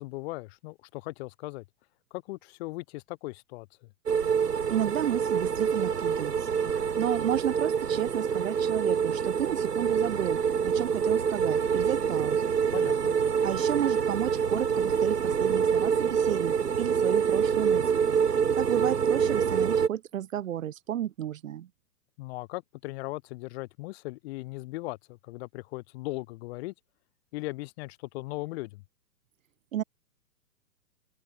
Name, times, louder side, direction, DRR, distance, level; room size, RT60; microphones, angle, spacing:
voice 1, 0.0-1.6 2.1-3.9 12.7-13.2 22.2-26.7 27.3-28.8, left 21 dB, 40° left, 7.1 m, -38 dB
sound 1, 4.1-19.9, right 7 dB, 70° right, 2.5 m, -26 dB
voice 2, 4.7-6.5 7.0-10.4 10.6-12.4 13.4-18.0 18.6-21.7 29.7-29.8, right 11 dB, 50° right, 3.6 m, -32 dB
open air
figure-of-eight pair, 115°, 49 cm